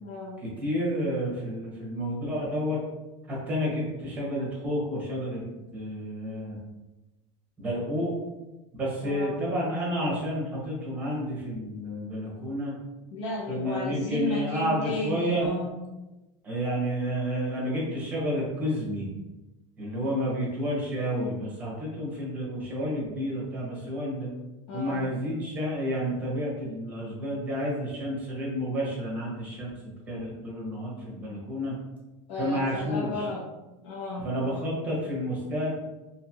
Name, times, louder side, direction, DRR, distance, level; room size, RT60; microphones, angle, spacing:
voice 1, 0.0-0.4 9.0-9.4 13.1-15.7 24.7-25.1 32.3-33.4 33.8-34.3, left 2 dB, 65° left, -3 dB, 0.6 m, -34 dB
voice 2, 0.6-2.8 3.3-5.4 5.7-6.6 7.6-8.1 8.7-12.7 13.5-15.5 16.4-19.1 19.8-24.3 24.7-31.7 32.4-33.3 34.2-35.7, equal, 10° right, -5 dB, 0.7 m, -30 dB
2.7 x 2.3 x 2.7 m, 1.1 s
supercardioid pair, 170°, 15 cm